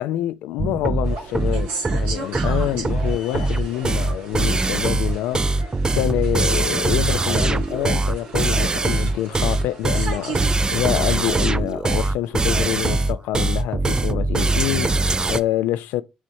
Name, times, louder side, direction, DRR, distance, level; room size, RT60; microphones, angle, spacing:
voice 1, 0.0-16.0, left 13 dB, 85° left, 0.3 m, -26 dB
sound 1, 0.6-15.4, right 2 dB, 25° right, 0.4 m, -22 dB
sound 2, 1.0-10.5, right 4 dB, 80° right, 1.6 m, -36 dB
6.2 x 3.1 x 2.6 m
supercardioid pair, 50°, 3 cm